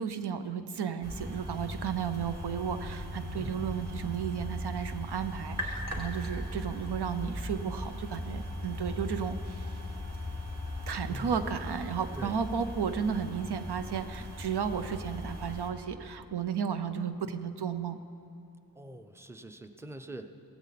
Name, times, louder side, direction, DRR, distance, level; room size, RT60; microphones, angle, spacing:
voice 1, 0.0-9.7 10.9-18.0, right 7 dB, 90° right, 10 dB, 0.8 m, -33 dB
sound 1, 1.0-15.7, equal, 40° right, 2.4 m, -38 dB
voice 2, 3.3-3.7 11.0-11.4 12.1-12.4 18.7-20.3, right 1 dB, 5° right, 8 dB, 0.7 m, -44 dB
17.0 x 15.0 x 4.2 m, 2.6 s
wide cardioid pair, 70°, 39 cm